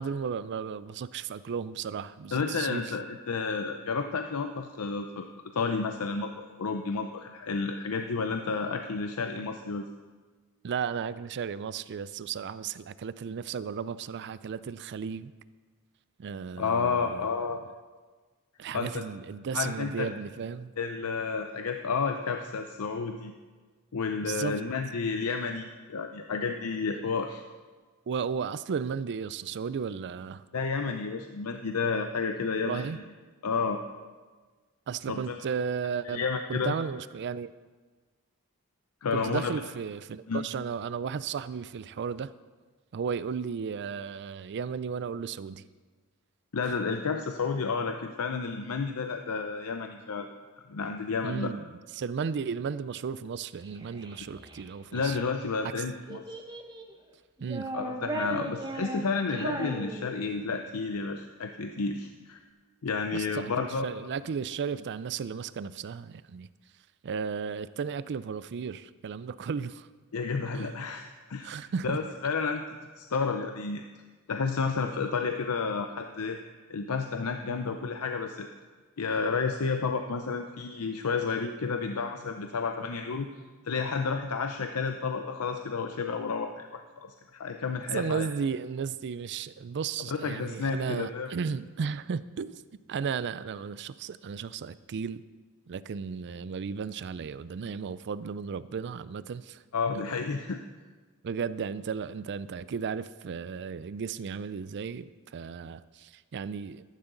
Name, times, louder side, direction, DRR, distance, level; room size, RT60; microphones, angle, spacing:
voice 1, 0.0-2.9 10.6-15.3 16.2-17.3 18.6-20.7 24.2-24.6 28.1-30.4 32.6-33.0 34.9-36.2 36.5-37.5 39.1-42.3 42.9-45.6 46.6-46.7 51.2-51.6 52.0-55.2 57.4-57.7 63.1-66.5 67.0-69.9 70.5-70.7 71.4-72.0 87.9-92.6 92.9-95.2 95.7-99.6 101.2-106.8, right 6 dB, 50° right, 16 dB, 0.4 m, -34 dB
voice 2, 2.3-5.3 5.5-9.9 16.6-17.6 18.7-19.0 19.5-20.1 20.8-23.3 23.9-27.4 30.5-33.0 33.4-33.8 35.1-35.4 36.0-36.7 39.0-39.5 40.3-40.4 46.5-50.3 50.7-51.5 54.9-56.2 57.7-62.4 62.8-63.9 70.1-73.8 74.3-76.4 76.7-78.5 79.0-83.3 83.6-88.3 90.1-91.3 99.7-100.6, left 4 dB, 70° left, 6 dB, 0.6 m, -31 dB
Child speech kid speaking, 53.6-55.3 56.1-56.9 57.4-60.5, right 2 dB, 20° right, 0.9 m, -37 dB
13.5 x 11.5 x 3.9 m, 1.4 s
head